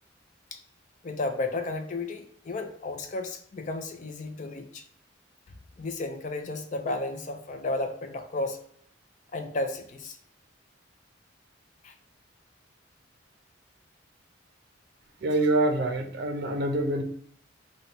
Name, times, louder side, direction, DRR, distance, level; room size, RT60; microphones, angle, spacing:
voice 1, 1.0-4.8 5.8-8.6 9.3-10.2 11.8-11.9, left 2 dB, 40° left, 6 dB, 0.4 m, -33 dB
voice 2, 15.2-17.0, right 1 dB, 55° right, 6 dB, 0.5 m, -25 dB
4.0 x 2.2 x 4.3 m, 0.63 s
head